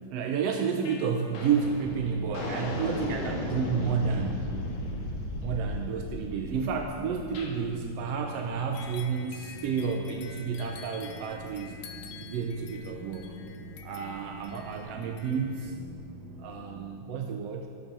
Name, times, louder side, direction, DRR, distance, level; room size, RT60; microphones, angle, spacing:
voice 1, 0.0-4.5 5.4-13.3 13.8-15.8 16.4-17.7, right 6 dB, 70° right, 3 dB, 1.7 m, -31 dB
sound 1, 0.8-1.0 1.3-7.5, left 1 dB, 60° left, 2.9 m, -36 dB
sound 2, 1.5-16.9, right 1 dB, 50° right, 1.7 m, -45 dB
sound 3, 8.7-15.7, left 7 dB, 85° left, 2.3 m, -49 dB
13.0 x 11.0 x 6.1 m, 2.4 s
omnidirectional pair, 3.4 m